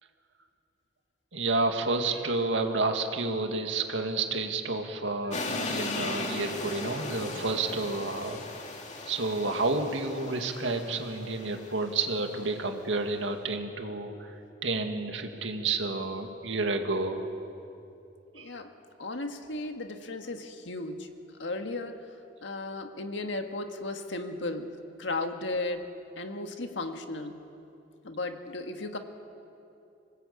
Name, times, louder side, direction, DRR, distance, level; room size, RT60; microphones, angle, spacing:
voice 1, 1.3-8.6 9.1-14.3 14.6-17.2 18.4-18.5, right 3 dB, 90° right, 4 dB, 2.2 m, -30 dB
sound 1, 5.3-12.4, left 2 dB, 40° left, 2.4 m, -37 dB
voice 2, 18.3-18.7 19.0-21.1 21.4-22.1 22.4-25.9 26.2-27.4 28.0-29.0, left 2 dB, 85° left, 5 dB, 1.7 m, -35 dB
26.5 x 19.0 x 8.5 m, 2.8 s
head